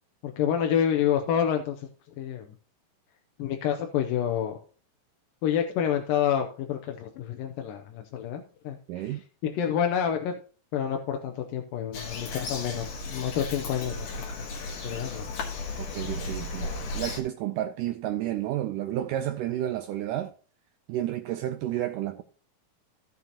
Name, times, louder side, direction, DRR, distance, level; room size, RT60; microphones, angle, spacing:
voice 1, 0.2-1.9 2.2-2.5 3.4-4.6 5.4-9.2 9.4-10.4 10.7-14.0 14.4-14.5 14.8-15.3, left 9 dB, 90° left, 2.5 m, -28 dB
voice 2, 8.9-9.2 15.8-20.3 20.9-22.2, right 13 dB, 80° right, 2.1 m, -31 dB
Bird vocalization bird call bird song, 11.9-17.2, left 3 dB, 65° left, 2.9 m, -35 dB
15.0 x 6.8 x 2.9 m
omnidirectional pair, 4.0 m